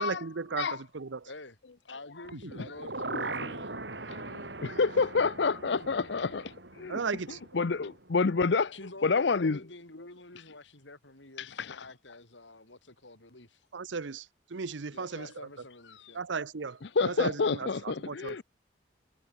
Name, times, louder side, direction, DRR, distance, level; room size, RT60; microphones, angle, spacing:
voice 1, 0.0-1.3 6.9-7.4 13.7-15.5 16.1-18.4, right 4 dB, 85° right, 0.8 m, -36 dB
voice 2, 1.2-1.6 1.8-4.6 8.7-13.6 14.9-16.2, left 2 dB, 90° left, 6.8 m, -48 dB
sound 1, 2.2-8.3 8.6-8.7, right 2 dB, 70° right, 6.5 m, -40 dB
voice 3, 4.6-7.0 7.5-8.7 9.0-9.6 11.4-11.8 17.0-18.4, left 4 dB, 70° left, 0.6 m, -28 dB
head